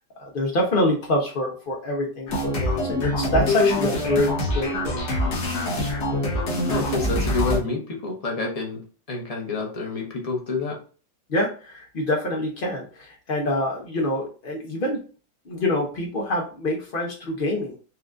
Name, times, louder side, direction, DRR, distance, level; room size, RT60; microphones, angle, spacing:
voice 1, 0.2-5.3 5.6-5.7 11.3-15.0 15.5-17.8, left 1 dB, 85° left, -1 dB, 0.4 m, -26 dB
sound 1, 2.3-7.6, left 1 dB, 65° left, 1.7 m, -24 dB
voice 2, 6.7-8.8 9.1-10.8, left 3 dB, 35° left, 0 dB, 0.6 m, -28 dB
5.5 x 2.4 x 2.5 m, 0.38 s
omnidirectional pair, 2.0 m